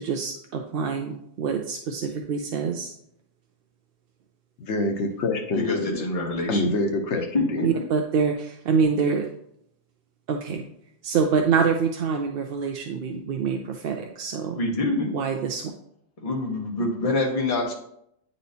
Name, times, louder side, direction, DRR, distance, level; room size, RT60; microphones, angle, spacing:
voice 1, 0.0-2.9 7.6-9.3 10.3-10.6 11.0-14.6 15.1-15.7, right 5 dB, 65° right, 3 dB, 0.7 m, -25 dB
voice 2, 4.6-6.0 6.5-7.7, left 2 dB, 80° left, 5 dB, 1.1 m, -26 dB
voice 3, 5.5-6.7 7.3-7.5 14.5-15.1 16.2-17.7, left 2 dB, 35° left, -1 dB, 1.1 m, -26 dB
9.3 x 4.2 x 2.7 m, 0.74 s
omnidirectional pair, 1.2 m